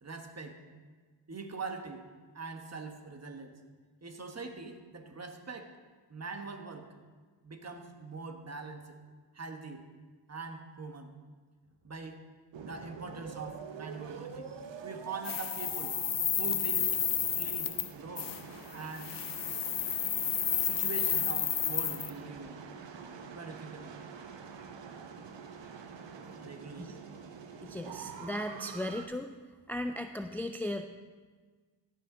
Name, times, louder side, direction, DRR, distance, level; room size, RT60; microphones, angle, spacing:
voice 1, 0.0-0.6 1.3-2.0 2.3-3.6 4.0-5.7 6.1-6.9 7.4-9.0 9.3-9.9 10.3-11.1 11.8-12.2 12.6-16.0 16.3-17.0 17.4-18.4 18.7-19.2 20.3-22.6 23.3-24.1 26.4-27.0, right 4 dB, 35° right, 5 dB, 1.3 m, -43 dB
sound 1, 12.5-29.1, right 6 dB, 80° right, 0.9 m, -46 dB
sound 2, 15.2-17.9 18.2-18.4 19.0-22.1, left 9 dB, 50° left, 0.7 m, -31 dB
voice 2, 27.6-29.3 29.7-30.8, left 1 dB, 5° left, 7 dB, 0.3 m, -36 dB
15.5 x 5.8 x 3.8 m, 1.4 s
cardioid pair, 65°, 44 cm